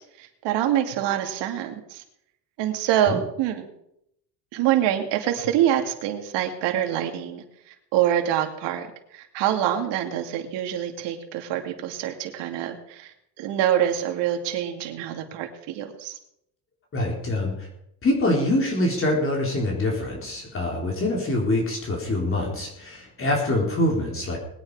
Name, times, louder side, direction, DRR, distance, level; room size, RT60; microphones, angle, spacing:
voice 1, 0.2-2.0 2.6-3.7 4.5-8.9 9.1-16.2, right 11 dB, 70° right, 4 dB, 2.5 m, -25 dB
voice 2, 16.9-17.7 18.0-24.4, left 1 dB, 30° left, -1 dB, 4.0 m, -25 dB
20.5 x 9.5 x 4.9 m, 0.78 s
cardioid pair, 120°, 44 cm